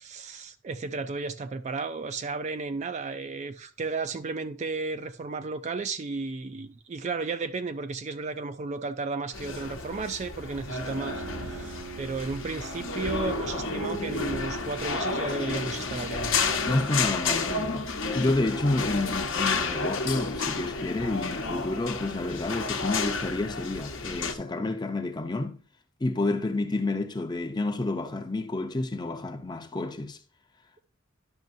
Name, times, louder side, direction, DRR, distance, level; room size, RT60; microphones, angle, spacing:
voice 1, 0.0-16.4, right 4 dB, 35° right, 0.3 m, -33 dB
sound 1, 9.3-24.3, left 4 dB, 65° left, 0.9 m, -31 dB
Bowed string instrument, 10.7-15.7, right 4 dB, 70° right, 0.7 m, -44 dB
voice 2, 16.7-17.9 18.1-25.6 26.0-30.2, left 2 dB, 20° left, 0.6 m, -29 dB
10.5 x 6.3 x 2.6 m
head